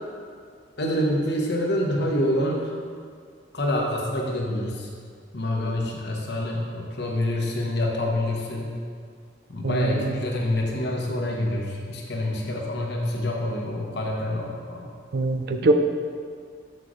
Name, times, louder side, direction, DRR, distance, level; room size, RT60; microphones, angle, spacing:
voice 1, 0.8-2.6 3.5-4.9 5.3-8.7 9.5-14.8, left 1 dB, 65° left, -1 dB, 1.0 m, -26 dB
voice 2, 9.6-10.2 15.1-15.7, right 2 dB, 60° right, 6 dB, 0.5 m, -23 dB
6.6 x 6.3 x 3.1 m, 2.1 s
head